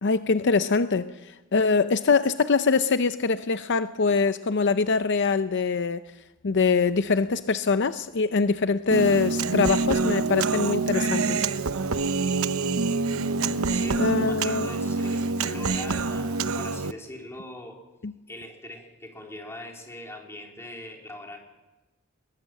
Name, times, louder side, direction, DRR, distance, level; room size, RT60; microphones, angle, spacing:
voice 1, 0.0-6.0 6.4-11.5 14.0-14.7 18.0-18.1, left 4 dB, 60° left, 11 dB, 0.6 m, -23 dB
Human voice, 8.9-16.9, right 4 dB, 85° right, 0.8 m, -26 dB
voice 2, 13.7-17.8 18.3-21.4, left 1 dB, 15° left, 1 dB, 3.6 m, -41 dB
21.0 x 20.5 x 7.6 m, 1.1 s
head